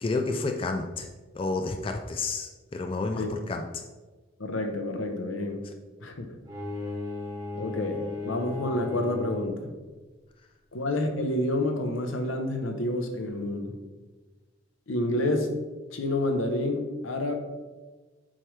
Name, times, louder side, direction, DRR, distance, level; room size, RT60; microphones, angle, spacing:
voice 1, 0.0-1.1 1.3-3.8, left 3 dB, 25° left, 5 dB, 0.3 m, -30 dB
voice 2, 4.4-5.6 6.0-6.3 7.6-9.7 10.7-13.8 14.9-15.6 15.9-17.3, left 1 dB, 80° left, 4 dB, 0.9 m, -29 dB
Bowed string instrument, 6.4-9.7, left 3 dB, 20° right, 1.5 m, -36 dB
7.5 x 4.8 x 3.2 m, 1.3 s
head